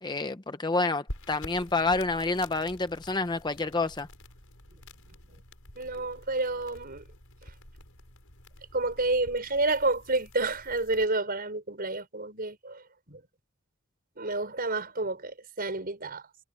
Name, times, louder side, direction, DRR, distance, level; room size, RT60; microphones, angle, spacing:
voice 1, 0.0-4.1, left 3 dB, 20° left, 0.7 m, -28 dB
sound 1, 1.1-11.0, left 1 dB, 65° left, 7.3 m, -48 dB
voice 2, 5.8-7.0 7.4-7.5 8.7-13.2 14.2-16.3, right 2 dB, 40° right, 5.8 m, -30 dB
head